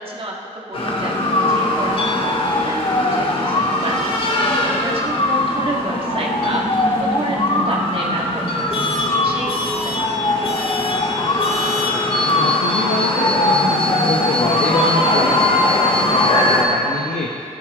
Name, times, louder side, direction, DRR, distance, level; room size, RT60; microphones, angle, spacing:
voice 1, 0.0-10.7 11.3-11.5, right 1 dB, 45° right, -3 dB, 1.9 m, -30 dB
sound 1, 0.7-16.6, left 1 dB, 45° left, 2.1 m, -19 dB
voice 2, 11.7-12.0 12.3-17.5, left 3 dB, 80° left, -2 dB, 1.1 m, -25 dB
13.5 x 11.5 x 3.7 m, 2.6 s
cardioid pair, 45°, 14 cm